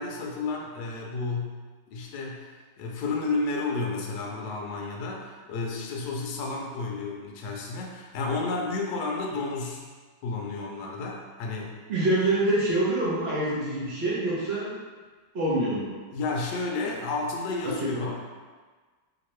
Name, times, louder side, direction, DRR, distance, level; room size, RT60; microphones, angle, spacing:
voice 1, 0.0-1.6 1.9-9.8 10.2-11.8 16.1-18.2, left 3 dB, 70° left, -1 dB, 1.0 m, -31 dB
voice 2, 11.9-14.7 15.3-15.9 17.6-17.9, right 1 dB, 65° right, -8 dB, 0.6 m, -26 dB
3.2 x 2.9 x 3.0 m, 1.4 s
omnidirectional pair, 2.2 m